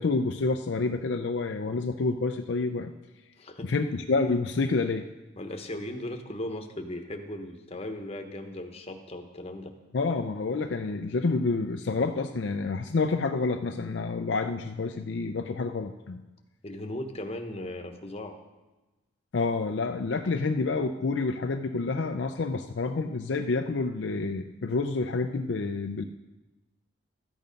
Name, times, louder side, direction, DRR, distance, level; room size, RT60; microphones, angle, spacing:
voice 1, 0.0-2.9 3.6-5.1 9.9-16.2 19.3-26.0, left 3 dB, 65° left, 5 dB, 0.5 m, -28 dB
voice 2, 3.4-3.7 5.4-9.7 16.6-18.4, left 1 dB, 30° left, 5 dB, 1.1 m, -37 dB
13.0 x 9.0 x 5.2 m, 1.1 s
head